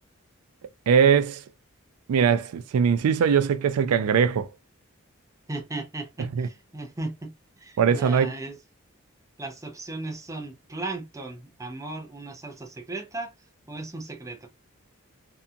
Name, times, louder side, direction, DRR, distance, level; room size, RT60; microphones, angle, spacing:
voice 1, 0.9-1.4 2.1-4.5 6.4-6.5 7.8-8.3, right 7 dB, 90° right, 0.3 m, -21 dB
voice 2, 5.5-8.6 9.4-13.3 13.7-14.5, right 2 dB, 15° right, 0.5 m, -36 dB
2.7 x 2.2 x 2.4 m
head